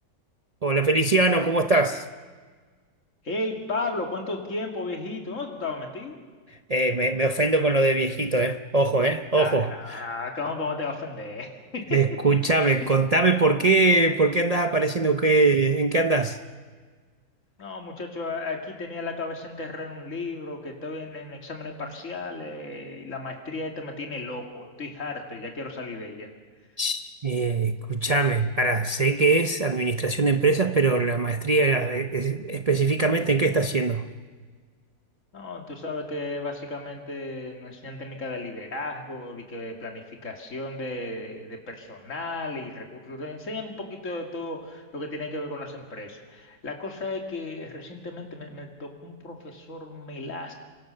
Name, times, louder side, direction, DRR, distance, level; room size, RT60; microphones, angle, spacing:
voice 1, 0.6-2.0 6.5-10.1 11.9-16.4 26.8-34.1, right 3 dB, 35° right, 0.7 m, -22 dB
voice 2, 3.2-6.2 9.3-12.0 12.8-12.9 17.6-26.3 35.3-50.5, left 2 dB, 55° left, 3.0 m, -34 dB
29.5 x 24.5 x 6.7 m
omnidirectional pair, 1.6 m